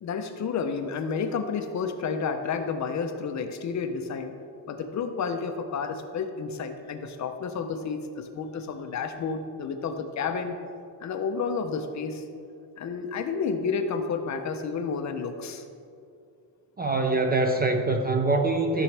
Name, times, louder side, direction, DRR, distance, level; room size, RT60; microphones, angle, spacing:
voice 1, 0.0-4.3 4.7-10.6 11.0-12.2 12.8-15.6, left 5 dB, 45° left, 6 dB, 0.6 m, -31 dB
voice 2, 16.8-18.8, right 3 dB, 25° right, 4 dB, 0.4 m, -24 dB
13.5 x 7.1 x 3.3 m, 2.4 s
cardioid pair, 175°, 41 cm